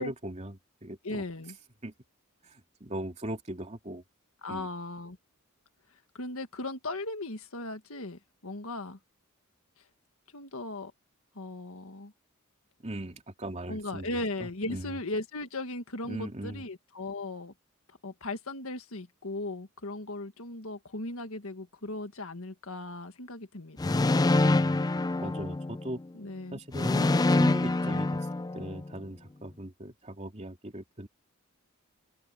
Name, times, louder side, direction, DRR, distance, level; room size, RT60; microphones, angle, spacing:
voice 1, 0.0-1.2 1.8-1.9 2.4-4.0 4.5-4.7 12.8-15.0 16.0-16.7 25.2-26.0 26.5-28.3 28.5-31.1, right 1 dB, 30° right, 2.8 m, -39 dB
voice 2, 1.0-1.6 4.4-5.2 6.1-9.0 10.3-10.9 11.4-12.1 13.7-17.5 18.0-24.0 26.1-26.6, left 2 dB, 65° left, 1.8 m, -37 dB
sound 1, 23.8-26.0 26.7-28.9, left 2 dB, 15° left, 0.4 m, -25 dB
open air
head